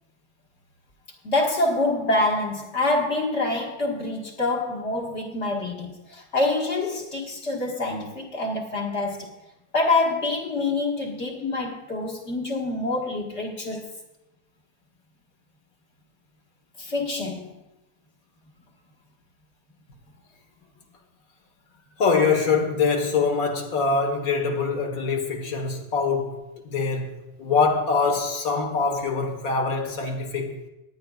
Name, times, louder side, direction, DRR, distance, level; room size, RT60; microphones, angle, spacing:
voice 1, 1.2-9.4 9.7-13.9 16.8-17.5, left 2 dB, 45° left, 1.9 m, -26 dB
voice 2, 22.0-30.6, left 4 dB, 60° left, 1.8 m, -24 dB
18.0 x 10.5 x 2.4 m
omnidirectional pair, 1.7 m